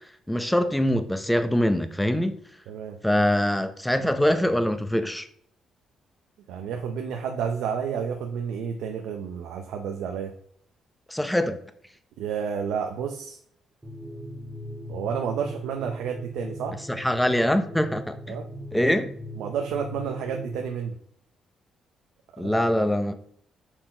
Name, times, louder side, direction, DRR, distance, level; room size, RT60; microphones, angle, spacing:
voice 1, 0.3-2.4 3.0-5.3 11.1-11.6 16.9-18.3 18.7-19.1 22.4-23.2, equal, 5° left, 0.7 m, -23 dB
voice 2, 2.7-3.0 6.5-10.3 12.2-13.4 14.9-16.8 18.3-18.5 19.4-21.0 22.4-22.5, right 7 dB, 85° right, 0.6 m, -30 dB
sound 1, 13.8-20.7, equal, 15° right, 1.2 m, -39 dB
5.7 x 4.5 x 4.4 m
cardioid pair, 90°, 0 cm